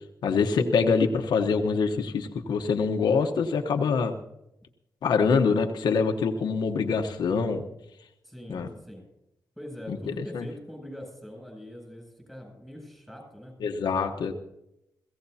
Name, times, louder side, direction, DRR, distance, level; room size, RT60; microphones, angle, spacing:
voice 1, 0.2-4.2 5.0-7.6 8.5-8.7 9.9-10.5 13.6-14.3, left 5 dB, 85° left, 4 dB, 1.1 m, -25 dB
voice 2, 8.2-9.0 9.6-13.5, equal, 5° right, 1 dB, 7.8 m, -43 dB
22.5 x 16.5 x 2.8 m, 0.85 s
cardioid pair, 105°, 7 cm